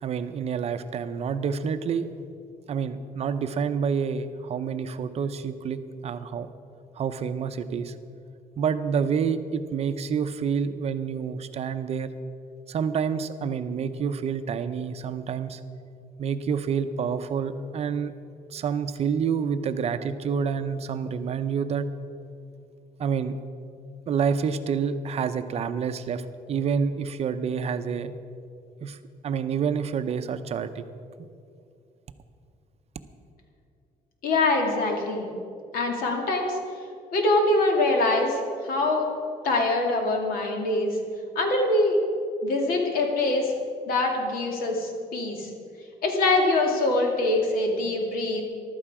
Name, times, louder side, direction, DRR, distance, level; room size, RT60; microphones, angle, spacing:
voice 1, 0.0-2.1 2.7-6.5 7.0-7.9 8.6-12.1 12.7-15.6 16.2-18.1 18.5-21.9 23.0-23.4 24.1-28.1 28.8-29.0 29.2-30.8 31.2-31.3, right 6 dB, 45° right, 10 dB, 0.6 m, -28 dB
voice 2, 34.2-35.3 35.7-36.6 37.1-38.4 38.6-39.1 39.4-41.0 41.4-42.0 42.4-43.5 43.9-45.5 46.0-48.4, left 2 dB, 75° left, 2 dB, 2.4 m, -24 dB
15.0 x 12.0 x 4.9 m, 2.4 s
cardioid pair, 145°, 15 cm